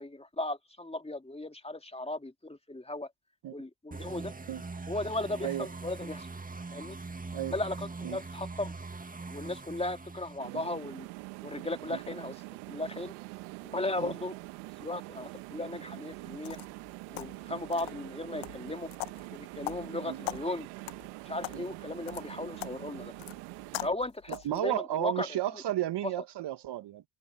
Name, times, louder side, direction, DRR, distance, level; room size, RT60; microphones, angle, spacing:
voice 1, 0.0-3.1 3.5-4.3 4.9-6.3 6.7-7.0 7.5-8.7 9.3-11.1 11.4-12.3 12.7-13.1 13.6-14.3 14.8-16.6 17.1-18.9 19.3-20.7 21.3-23.1 23.8-25.4, left 2 dB, 10° left, 2.8 m, -36 dB
sound 1, 3.9-10.4, right 3 dB, 15° right, 1.9 m, -42 dB
sound 2, 10.4-23.9, right 26 dB, 75° right, 1.8 m, -44 dB
sound 3, 16.1-24.6, left 21 dB, 70° left, 1.3 m, -43 dB
voice 2, 24.3-27.0, right 13 dB, 55° right, 1.9 m, -33 dB
hypercardioid pair, 50°, 48 cm